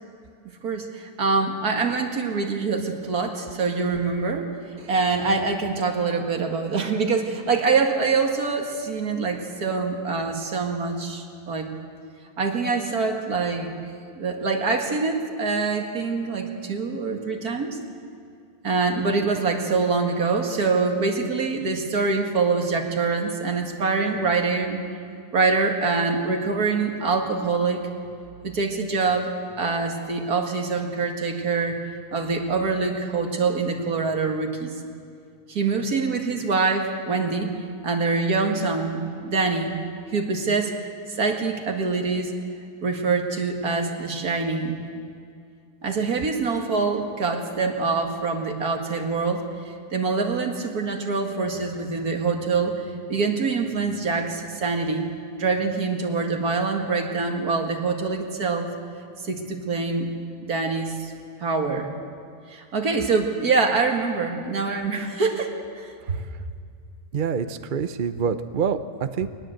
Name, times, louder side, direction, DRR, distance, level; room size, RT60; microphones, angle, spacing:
voice 1, 0.6-4.5 4.8-11.7 12.4-13.7 14.2-17.8 18.6-24.8 25.3-27.8 28.4-31.7 32.1-34.7 35.5-37.5 37.8-39.8 40.1-40.7 41.1-42.3 42.8-44.8 45.8-55.1 55.4-58.7 59.2-60.1 60.4-61.1 61.4-61.9 62.5-65.9, right 4 dB, 70° right, 3 dB, 2.4 m, -25 dB
voice 2, 67.1-69.3, right 6 dB, 45° right, 10 dB, 0.7 m, -26 dB
21.5 x 19.5 x 7.8 m, 2.3 s
omnidirectional pair, 1.7 m